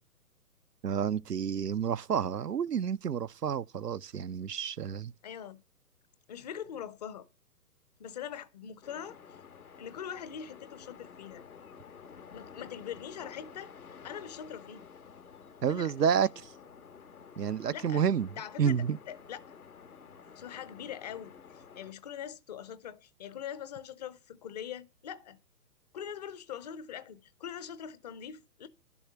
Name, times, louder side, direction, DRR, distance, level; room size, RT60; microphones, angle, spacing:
voice 1, 0.8-5.1 15.6-16.3 17.4-18.3 18.6-19.0, right 7 dB, 85° right, 0.7 m, -29 dB
voice 2, 5.2-5.6 6.3-7.3 8.0-9.2 9.8-11.4 12.3-13.7 14.0-14.9 15.7-16.2 17.7-18.0 18.4-18.8 19.1-19.4 20.4-25.4 25.9-28.7, left 9 dB, 25° left, 0.8 m, -42 dB
sound 1, 8.8-21.9, left 6 dB, 65° left, 1.5 m, -51 dB
12.0 x 7.1 x 5.6 m
figure-of-eight pair, 130°, 46 cm